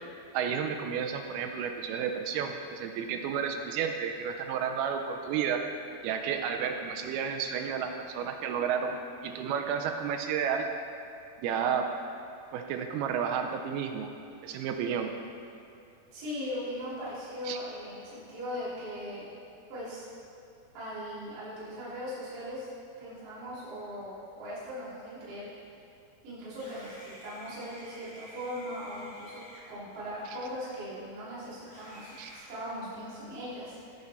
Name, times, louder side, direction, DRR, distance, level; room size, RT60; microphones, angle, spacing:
voice 1, 0.3-5.7 6.0-9.0 9.2-10.7 11.4-11.9 12.5-14.1 14.4-15.1 17.5-17.6 32.2-32.3, right 7 dB, 80° right, 5 dB, 2.3 m, -31 dB
voice 2, 16.1-19.3 19.7-20.1 20.7-22.7 23.0-25.5 26.2-29.4 29.7-34.0, equal, 55° right, -11 dB, 4.3 m, -39 dB
Screaming, 26.5-31.0 31.6-33.3, equal, 40° left, 3.3 m, -51 dB
17.0 x 5.9 x 4.2 m, 2.6 s
omnidirectional pair, 4.9 m